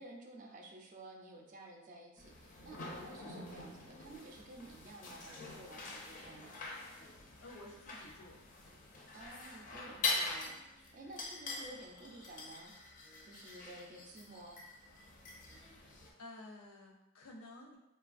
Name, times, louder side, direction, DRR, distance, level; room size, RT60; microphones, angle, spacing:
voice 1, 0.0-6.6 9.1-12.7 13.2-14.6, right 2 dB, 40° right, 1 dB, 0.4 m, -53 dB
sound 1, 2.2-16.1, left 3 dB, 40° left, 0.4 m, -44 dB
voice 2, 7.2-8.4 16.2-17.8, left 2 dB, 90° left, 0 dB, 0.6 m, -52 dB
3.2 x 2.3 x 2.4 m, 0.91 s
head